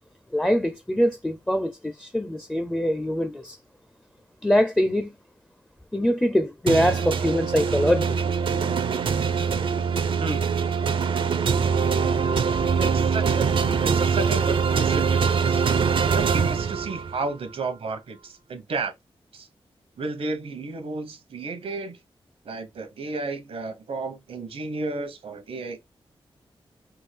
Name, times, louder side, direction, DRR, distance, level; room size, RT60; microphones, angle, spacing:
voice 1, 0.3-3.6 4.4-5.1 5.9-8.2, equal, 10° left, 0.4 m, -23 dB
sound 1, 6.7-17.3, right 6 dB, 60° right, 0.4 m, -23 dB
voice 2, 10.2-10.5 12.8-15.6 16.1-18.9 19.3-19.5 20.0-22.0 22.4-25.8, right 3 dB, 85° right, 0.8 m, -32 dB
3.5 x 2.4 x 3.2 m
wide cardioid pair, 85°, 10 cm